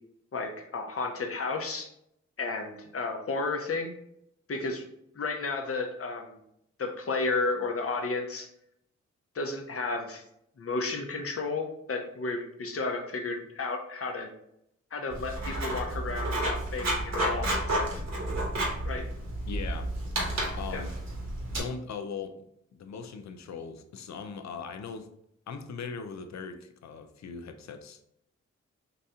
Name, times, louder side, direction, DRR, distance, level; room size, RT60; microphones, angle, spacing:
voice 1, 0.3-1.9 2.4-3.9 4.5-4.8 5.2-6.4 6.8-8.5 9.3-10.2 10.6-14.3 14.9-18.0 18.8-19.0 20.7-20.8, left 3 dB, 50° left, 3 dB, 0.9 m, -32 dB
Writing, 15.1-21.6, right 1 dB, 65° right, 1.4 m, -31 dB
voice 2, 19.5-19.9 20.5-20.9 21.5-22.4 22.7-25.1 25.5-28.0, left 5 dB, 65° left, 8 dB, 0.6 m, -39 dB
3.9 x 2.8 x 3.6 m, 0.76 s
supercardioid pair, 40°, 29 cm